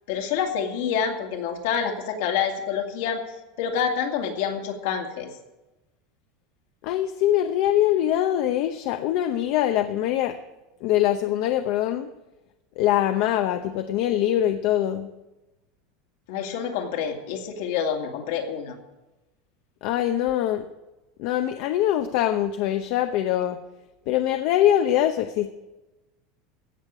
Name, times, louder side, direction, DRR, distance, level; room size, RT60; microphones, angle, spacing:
voice 1, 0.1-3.2 3.6-5.3 16.3-18.8, left 7 dB, 70° left, 3 dB, 2.4 m, -27 dB
voice 2, 6.8-10.4 10.8-12.1 12.8-15.1 19.8-20.6 21.2-23.6 24.1-25.5, left 12 dB, 50° left, 8 dB, 0.7 m, -23 dB
16.0 x 6.6 x 8.8 m, 1.0 s
supercardioid pair, 170°, 0 cm